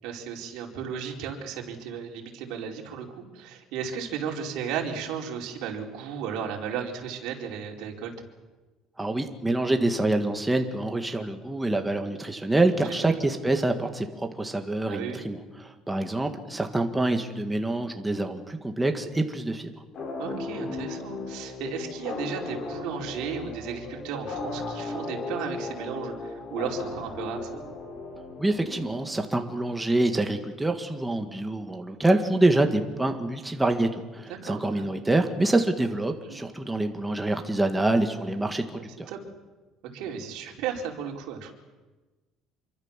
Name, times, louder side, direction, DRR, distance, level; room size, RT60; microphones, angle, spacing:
voice 1, 0.0-8.1 13.0-13.2 14.9-15.2 20.2-27.6 34.3-34.9 36.2-36.4 38.8-39.2 39.9-41.5, right 7 dB, 70° right, 1 dB, 4.7 m, -35 dB
voice 2, 9.0-19.7 28.4-39.1, right 2 dB, 5° right, 5 dB, 1.7 m, -26 dB
sound 1, 19.9-29.4, left 3 dB, 35° left, 5.4 m, -36 dB
27.0 x 24.0 x 7.4 m, 1.2 s
cardioid pair, 170°, 0 cm